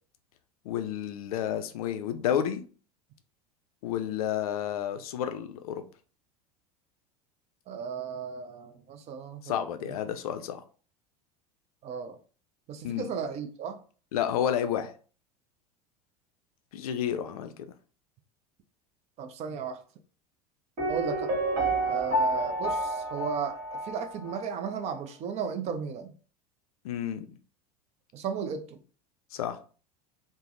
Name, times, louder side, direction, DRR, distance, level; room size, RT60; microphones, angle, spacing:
voice 1, 0.7-2.6 3.8-5.8 9.4-10.6 12.8-13.1 14.1-14.9 16.7-17.6 26.8-27.3 29.3-29.6, left 9 dB, 65° left, 0.4 m, -30 dB
voice 2, 7.7-10.0 11.8-12.2 12.7-13.8 19.2-19.8 20.9-21.4 21.9-26.1 28.1-28.8, right 6 dB, 35° right, 0.4 m, -35 dB
Piano, 20.8-24.5 24.8-24.9, right 1 dB, 50° right, 1.4 m, -29 dB
3.3 x 2.0 x 2.5 m
figure-of-eight pair, 75°, 20 cm